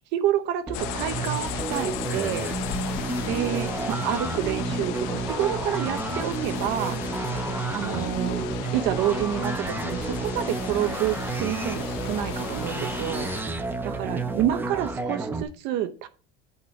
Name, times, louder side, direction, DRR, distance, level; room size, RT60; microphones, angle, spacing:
voice 1, 0.1-2.5 3.3-7.0 7.7-16.1, right 11 dB, 60° right, 11 dB, 0.7 m, -29 dB
sound 1, 0.7-13.4, left 14 dB, 75° left, 0.6 m, -35 dB
sound 2, 0.7-15.4, right 3 dB, 10° right, 0.6 m, -31 dB
voice 2, 2.6-3.1 7.2-7.7 12.8-12.9 13.7-15.2, left 4 dB, 20° left, 1 dB, 2.0 m, -47 dB
6.7 x 4.3 x 5.7 m, 0.36 s
cardioid pair, 155°, 20 cm